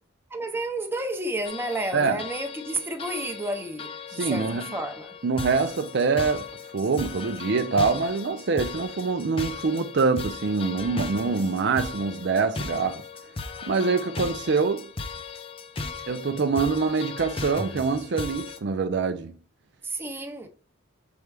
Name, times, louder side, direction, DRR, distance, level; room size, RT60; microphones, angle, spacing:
voice 1, 0.3-5.1 19.8-20.5, right 1 dB, 10° right, 0.8 m, -31 dB
sound 1, 1.4-18.6, left 4 dB, 30° left, 0.6 m, -37 dB
voice 2, 4.2-4.7 5.2-6.5 6.7-13.0 13.6-14.9 16.1-19.3, right 4 dB, 60° right, 0.5 m, -25 dB
6.6 x 4.6 x 3.3 m
head